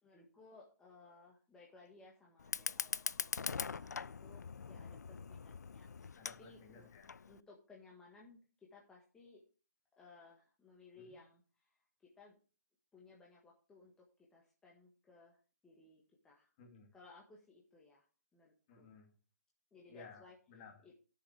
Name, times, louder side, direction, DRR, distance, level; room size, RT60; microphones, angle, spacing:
voice 1, 0.0-3.3 3.7-6.1 6.4-6.9 7.2-9.4 10.0-11.8 12.2-12.4 12.9-16.5 16.9-18.1 18.3-18.9 19.7-20.3 20.8-20.9, left 3 dB, 10° left, -3 dB, 1.6 m, -61 dB
Fire, 2.4-7.4, left 5 dB, 80° left, 0.5 m, -42 dB
voice 2, 6.1-7.2 10.9-11.2 16.6-16.9 18.7-19.1 19.9-20.9, left 4 dB, 30° left, 2 dB, 2.8 m, -58 dB
11.5 x 6.9 x 4.9 m, 0.37 s
hypercardioid pair, 150°, 9 cm